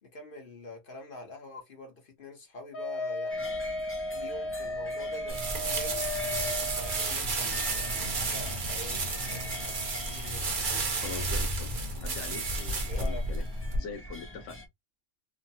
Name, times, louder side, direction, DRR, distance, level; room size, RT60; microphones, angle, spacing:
voice 1, 0.0-3.6 4.1-10.5 12.9-13.2, left 2 dB, 50° left, 1.0 m, -45 dB
Wind instrument woodwind instrument, 2.7-7.1, left 1 dB, 65° left, 1.3 m, -35 dB
sound 1, 3.3-14.7, equal, 15° left, 0.5 m, -42 dB
sound 2, 5.3-13.8, right 3 dB, 45° right, 0.8 m, -32 dB
voice 2, 11.0-13.4 13.7-14.6, left 5 dB, 85° left, 1.0 m, -42 dB
3.0 x 2.1 x 2.6 m
omnidirectional pair, 1.3 m